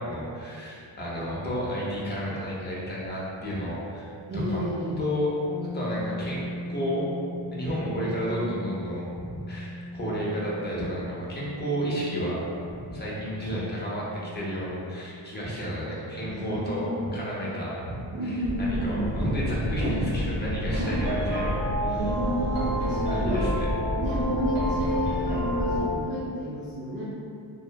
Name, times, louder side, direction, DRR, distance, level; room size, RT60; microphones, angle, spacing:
voice 1, 0.0-4.6 5.0-5.3 5.7-7.0 7.5-12.4 12.6-21.6 23.1-23.7, equal, 25° left, -6 dB, 0.5 m, -31 dB
voice 2, 4.3-4.9 16.2-17.1 18.1-19.1 20.7-21.4 21.9-23.5 24.0-27.0, right 1 dB, 40° right, -8 dB, 0.5 m, -31 dB
sound 1, 5.4-15.2, left 1 dB, 85° left, 0.6 m, -39 dB
sound 2, 18.4-25.8, equal, 5° right, 0.8 m, -30 dB
sound 3, 20.7-25.9, equal, 60° right, 0.8 m, -30 dB
3.0 x 2.0 x 2.2 m, 2.5 s
cardioid pair, 130°, 46 cm